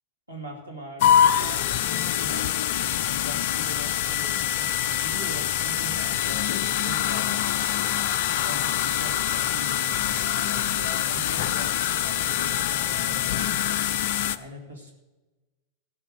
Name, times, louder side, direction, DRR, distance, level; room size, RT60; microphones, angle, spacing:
voice 1, 0.3-2.5 3.1-7.5 8.4-13.6 14.3-14.9, equal, 85° right, 0 dB, 2.5 m, -41 dB
sound 1, 1.0-14.4, left 10 dB, 50° left, 0.4 m, -25 dB
15.5 x 5.7 x 6.6 m, 1.1 s
figure-of-eight pair, 90°, 0 cm